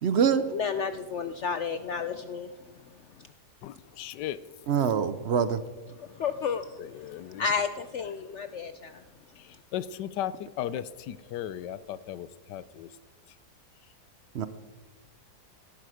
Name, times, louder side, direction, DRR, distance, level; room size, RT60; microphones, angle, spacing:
voice 1, 0.0-0.4 4.7-5.6 14.3-14.5, right 7 dB, 60° right, 13 dB, 0.7 m, -24 dB
voice 2, 0.5-2.5 6.0-6.7 7.3-8.9, left 6 dB, 70° left, 10 dB, 0.7 m, -31 dB
voice 3, 3.6-4.4 6.8-7.4 9.7-12.9, left 11 dB, 90° left, 16 dB, 1.3 m, -36 dB
17.5 x 12.0 x 4.9 m, 1.4 s
omnidirectional pair, 1.8 m